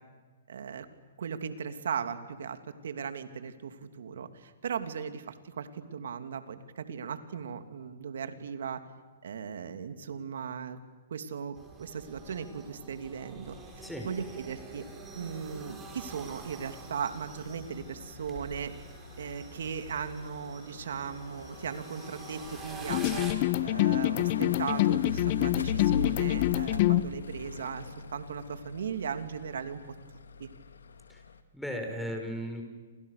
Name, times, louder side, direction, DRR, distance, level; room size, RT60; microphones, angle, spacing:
voice 1, 0.5-0.9 1.2-2.6 2.8-8.8 9.2-10.8 11.1-14.9 15.2-18.7 19.2-23.3 23.6-30.0 30.4-30.5, right 7 dB, 70° right, 9 dB, 2.8 m, -37 dB
sound 1, 11.5-23.3, right 4 dB, 15° right, 6.2 m, -47 dB
sound 2, 13.5-31.4, left 5 dB, 85° left, 2.2 m, -42 dB
sound 3, 22.9-27.1, left 16 dB, 40° left, 0.9 m, -26 dB
voice 2, 31.5-32.6, equal, ahead, 2 dB, 5.7 m, -36 dB
30.0 x 28.0 x 6.8 m, 1.4 s
hypercardioid pair, 135°, 0 cm